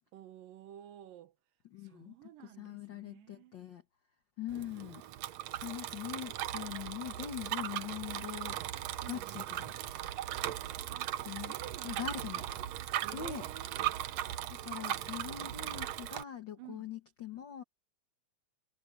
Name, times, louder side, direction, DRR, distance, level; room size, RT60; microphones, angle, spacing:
voice 1, 0.1-1.3 1.8-3.7 4.4-4.5 9.0-9.4 10.9-12.5 13.0-14.0 16.6-16.9, right 12 dB, 90° right, 2.8 m, -52 dB
voice 2, 1.7-2.1 2.4-3.8 4.4-5.0 5.3-8.6 9.1-9.7 11.3-11.5 11.8-12.4 13.1-13.4 14.5-17.6, left 10 dB, 75° left, 1.0 m, -42 dB
Bicycle, 4.5-16.2, right 13 dB, 70° right, 1.7 m, -38 dB
omnidirectional pair, 3.8 m